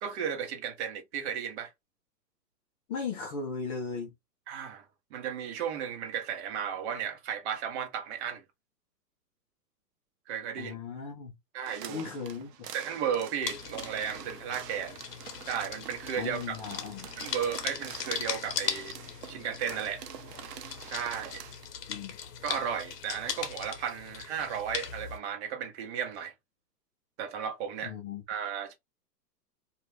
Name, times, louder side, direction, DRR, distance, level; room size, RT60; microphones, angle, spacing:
voice 1, 0.0-1.7 4.5-4.8 5.1-8.4 10.3-10.7 11.5-12.1 12.7-15.0 15.5-16.6 17.2-18.9 19.3-20.0 20.9-21.4 22.4-26.3 27.2-27.9 28.3-28.7, right 8 dB, 45° right, 0.9 m, -34 dB
voice 2, 2.9-4.1 10.6-11.3 11.9-12.5 16.2-17.1 21.9-22.2 27.8-28.2, left 5 dB, 25° left, 0.4 m, -37 dB
sound 1, 11.7-21.7, right 9 dB, 70° right, 0.7 m, -46 dB
sound 2, 13.4-25.2, left 8 dB, 70° left, 0.8 m, -39 dB
2.4 x 2.3 x 3.2 m
hypercardioid pair, 120°, 50 cm